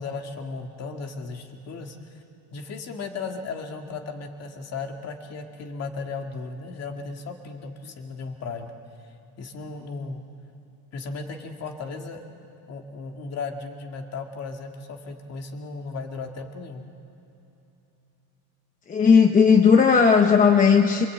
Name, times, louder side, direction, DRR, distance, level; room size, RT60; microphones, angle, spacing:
voice 1, 0.0-2.2 2.5-8.7 9.4-10.2 10.9-12.2 12.7-16.9, left 4 dB, 35° left, 4 dB, 2.3 m, -35 dB
voice 2, 18.9-21.1, left 6 dB, 15° left, 4 dB, 0.9 m, -16 dB
26.5 x 25.5 x 8.7 m, 2.9 s
cardioid pair, 165°, 47 cm